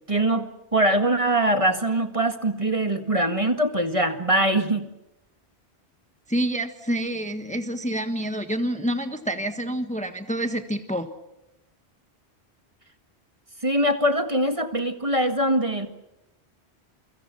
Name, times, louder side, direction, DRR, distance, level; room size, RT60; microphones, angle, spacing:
voice 1, 0.1-4.8 13.6-15.9, right 1 dB, 30° right, 7 dB, 1.9 m, -22 dB
voice 2, 6.3-11.1, right 1 dB, 5° left, 7 dB, 1.4 m, -27 dB
28.5 x 24.5 x 6.0 m, 0.90 s
omnidirectional pair, 1.1 m